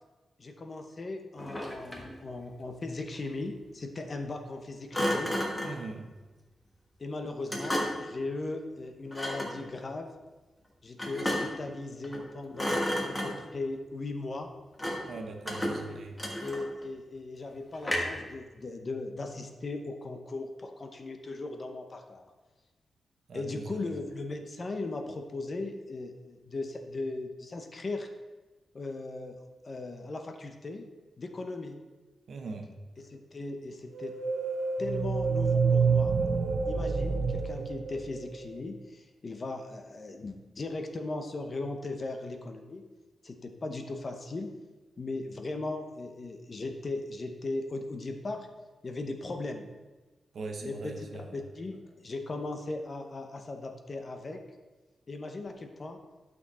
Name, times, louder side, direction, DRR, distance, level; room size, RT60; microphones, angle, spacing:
voice 1, 0.4-5.4 7.0-10.1 10.8-14.5 16.4-22.3 23.3-28.1 28.7-29.4 29.6-30.9 31.2-31.8 33.0-34.1 34.8-36.2 36.7-42.8 43.2-44.5 45.0-48.5 48.8-49.7 50.6-54.4 55.1-56.0, left 2 dB, 30° left, 5 dB, 0.8 m, -38 dB
Thump thud, 1.4-2.2 4.9-5.8 7.5-8.1 9.1-9.6 11.0-11.7 12.0-12.3 12.5-13.6 14.8-15.1 15.5-16.8 17.8-18.3, equal, 10° left, 1.3 m, -32 dB
voice 2, 5.6-6.1 15.1-16.2 23.3-23.9 32.3-32.8 50.3-51.4, right 3 dB, 60° right, 4 dB, 1.0 m, -41 dB
sound 1, 33.9-38.6, right 5 dB, 80° right, 0.6 m, -28 dB
11.5 x 6.1 x 4.2 m, 1.2 s
wide cardioid pair, 170°, 0 cm